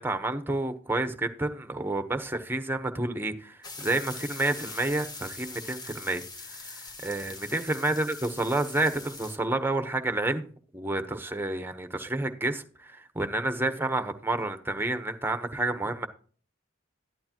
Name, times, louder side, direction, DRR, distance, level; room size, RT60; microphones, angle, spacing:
voice 1, 0.0-10.5 10.7-16.1, right 2 dB, 10° right, 0.9 m, -30 dB
sound 1, 3.6-9.4, left 3 dB, 20° left, 1.4 m, -42 dB
12.0 x 11.5 x 2.9 m
head